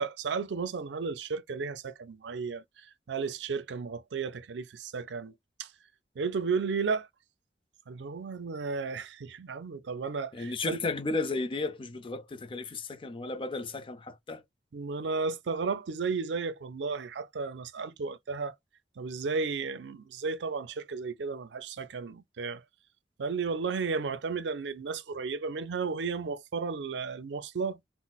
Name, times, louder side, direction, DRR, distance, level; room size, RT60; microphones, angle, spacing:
voice 1, 0.0-5.3 5.6-5.7 6.2-7.1 7.9-10.8 14.7-18.5 19.0-22.6 23.2-27.8, right 5 dB, 85° right, 0.5 m, -33 dB
voice 2, 10.3-14.4, left 3 dB, 30° left, 0.5 m, -34 dB
3.9 x 2.0 x 2.3 m
head